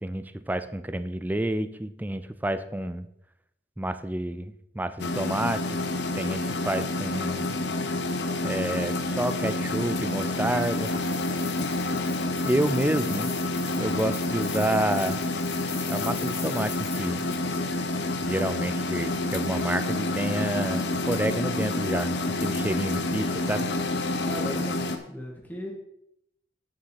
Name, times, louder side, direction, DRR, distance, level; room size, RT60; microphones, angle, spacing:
voice 1, 0.0-3.1 3.8-5.8 6.2-7.6 8.4-10.9 12.4-13.3 13.8-15.2 15.9-17.3 18.2-23.7, right 1 dB, 10° right, 12 dB, 0.4 m, -29 dB
sound 1, 5.0-25.0, left 2 dB, 70° left, 0.9 m, -28 dB
sound 2, 9.2-17.4, left 6 dB, 35° left, 1.3 m, -43 dB
voice 2, 24.3-24.8 25.1-25.7, equal, 10° left, -2 dB, 1.8 m, -36 dB
8.9 x 7.0 x 4.7 m, 0.78 s
head